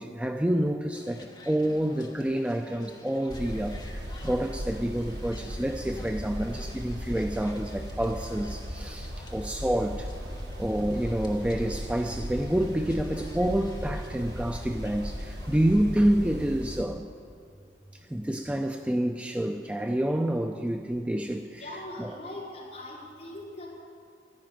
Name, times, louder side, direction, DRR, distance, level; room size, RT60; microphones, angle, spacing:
voice 1, 0.0-10.1 10.6-17.1 18.1-21.7 22.0-22.2, right 1 dB, 5° right, 5 dB, 0.4 m, -28 dB
sound 1, 0.9-15.8, left 2 dB, 25° left, 1.2 m, -51 dB
sound 2, 3.3-16.8, equal, 65° right, 1.3 m, -37 dB
voice 2, 21.6-23.7, left 1 dB, 40° left, -7 dB, 4.7 m, -41 dB
12.0 x 11.0 x 9.1 m, 2.5 s
head